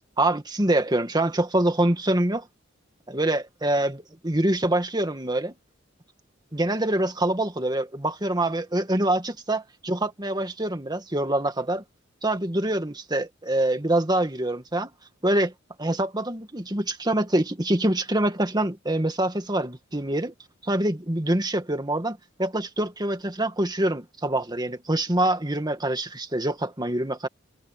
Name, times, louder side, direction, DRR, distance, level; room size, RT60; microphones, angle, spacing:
voice 1, 0.2-2.5 3.1-5.5 6.5-11.8 12.2-14.9 15.2-15.5 15.8-20.3 20.6-27.3, right 1 dB, 20° right, 2.0 m, -25 dB
head